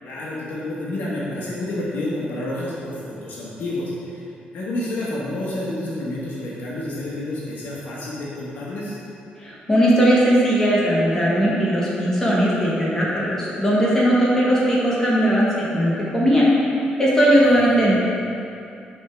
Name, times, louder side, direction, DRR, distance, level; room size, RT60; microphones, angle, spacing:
voice 1, 0.0-4.3 4.5-9.0 17.3-17.8, left 1 dB, 65° left, -7 dB, 1.2 m, -29 dB
voice 2, 9.4-18.0, equal, 15° left, -6 dB, 1.0 m, -18 dB
6.3 x 3.6 x 5.7 m, 2.6 s
cardioid pair, 150°, 3 cm